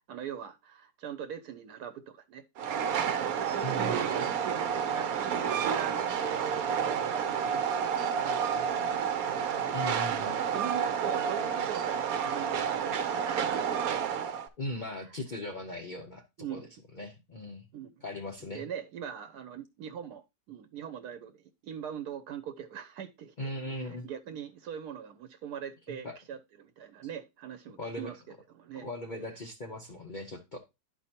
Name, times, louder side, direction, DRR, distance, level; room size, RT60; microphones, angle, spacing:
voice 1, 0.1-2.4 3.2-8.8 10.1-13.7 16.4-16.7 17.7-17.9 18.4-28.2 28.5-28.9, right 8 dB, 85° right, 1.2 m, -42 dB
Train, 2.6-14.5, right 7 dB, 70° right, 1.2 m, -30 dB
voice 2, 3.6-4.0 9.7-10.4 14.6-16.2 16.5-17.7 18.0-18.7 23.4-24.1 25.9-26.2 27.8-28.1 28.7-30.6, left 1 dB, 45° left, 0.7 m, -39 dB
11.5 x 4.4 x 2.8 m
omnidirectional pair, 1.7 m